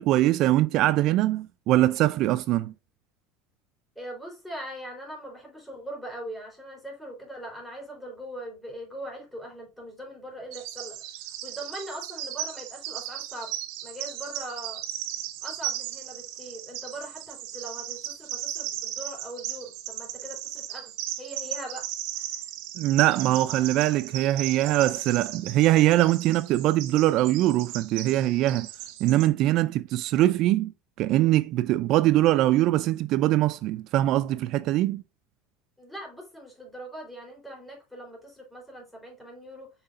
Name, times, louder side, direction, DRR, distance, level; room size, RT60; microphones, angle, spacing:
voice 1, 0.0-2.7 22.8-28.7 29.0-30.7 31.0-35.0, right 15 dB, 50° right, 0.3 m, -22 dB
voice 2, 4.0-11.0 11.4-13.5 13.8-14.8 15.4-21.9 22.1-22.4 35.8-39.7, right 1 dB, 5° left, 3.6 m, -41 dB
Bird vocalization bird call bird song, 10.5-29.3, right 12 dB, 65° right, 1.3 m, -36 dB
6.6 x 5.8 x 2.5 m
supercardioid pair, 140°, 0 cm